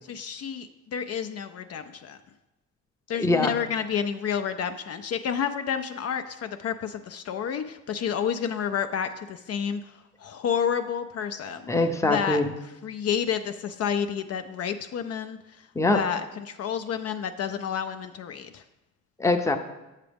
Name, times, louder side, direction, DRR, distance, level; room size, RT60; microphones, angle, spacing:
voice 1, 0.1-2.2 3.1-9.9 10.2-11.6 12.0-12.4 12.8-15.4 15.9-18.6, left 8 dB, 55° left, 8 dB, 0.4 m, -30 dB
voice 2, 3.1-3.5 11.7-12.5 15.7-16.0 19.2-19.6, left 2 dB, 10° left, 5 dB, 0.6 m, -23 dB
7.3 x 7.0 x 3.4 m, 1.0 s
cardioid pair, 90°, 30 cm